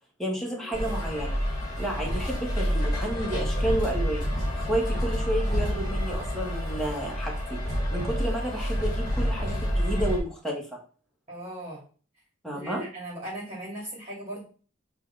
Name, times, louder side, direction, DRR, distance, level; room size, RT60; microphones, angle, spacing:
voice 1, 0.2-1.4 1.8-4.3 4.6-7.6 7.9-10.6 12.4-12.8, right 1 dB, ahead, -2 dB, 1.8 m, -31 dB
sound 1, 0.7-10.2, equal, 20° left, 2.2 m, -28 dB
voice 2, 4.9-5.2 11.3-11.8 12.5-14.4, right 1 dB, 35° right, -5 dB, 2.6 m, -38 dB
7.9 x 3.4 x 4.1 m, 0.39 s
head